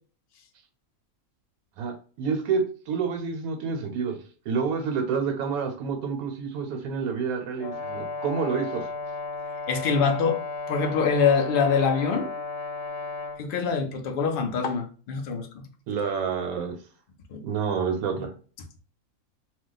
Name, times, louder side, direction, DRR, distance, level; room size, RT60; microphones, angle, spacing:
voice 1, 1.8-4.2 4.5-8.9 15.9-16.8 17.4-18.3, right 6 dB, 85° right, 1.1 m, -28 dB
Brass instrument, 7.6-13.4, left 3 dB, 55° left, 0.9 m, -34 dB
voice 2, 9.7-10.4 10.7-12.3 13.4-15.6 17.3-17.4, left 5 dB, 75° left, 0.5 m, -24 dB
2.3 x 2.1 x 3.8 m
omnidirectional pair, 1.5 m